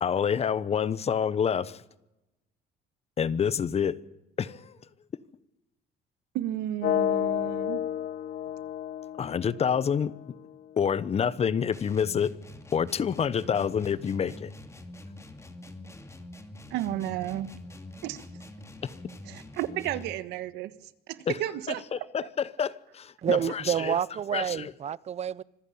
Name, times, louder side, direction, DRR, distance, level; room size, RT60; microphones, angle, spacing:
voice 1, 0.0-1.8 3.2-4.0 4.4-4.8 9.2-10.1 10.8-12.3 12.7-14.5 18.8-18.9 21.3-21.4 21.7-24.0 24.3-24.7, left 7 dB, 35° left, 1.0 m, -28 dB
voice 2, 6.3-7.8 16.7-17.5 18.0-18.2 19.3-20.7 21.1-21.8, right 13 dB, 90° right, 1.4 m, -32 dB
sound 1, 6.8-10.8, left 11 dB, 65° left, 0.9 m, -31 dB
sound 2, 11.7-20.2, left 1 dB, 15° left, 2.6 m, -45 dB
voice 3, 23.2-25.4, right 9 dB, 40° right, 0.7 m, -28 dB
25.5 x 15.0 x 8.7 m
cardioid pair, 110°, 17 cm